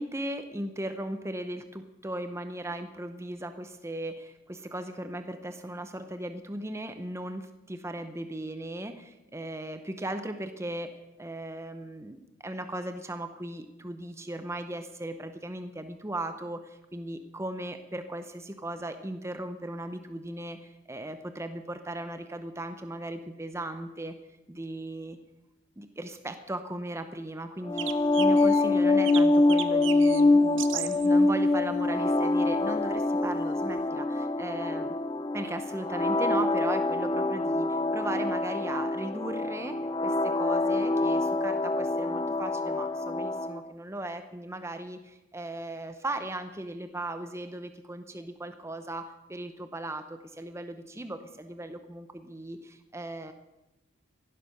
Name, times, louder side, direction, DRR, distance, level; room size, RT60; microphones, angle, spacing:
voice 1, 0.0-10.9 11.2-24.1 24.5-25.2 25.8-34.9 35.3-53.3, right 1 dB, 15° right, 9 dB, 0.7 m, -37 dB
sound 1, 27.7-43.6, left 2 dB, 20° left, 0.4 m, -25 dB
sound 2, 27.8-28.6 29.1-30.2 30.6-31.1 32.4-32.5 33.8-33.9, right 12 dB, 60° right, 0.7 m, -36 dB
15.5 x 11.0 x 6.5 m, 0.98 s
head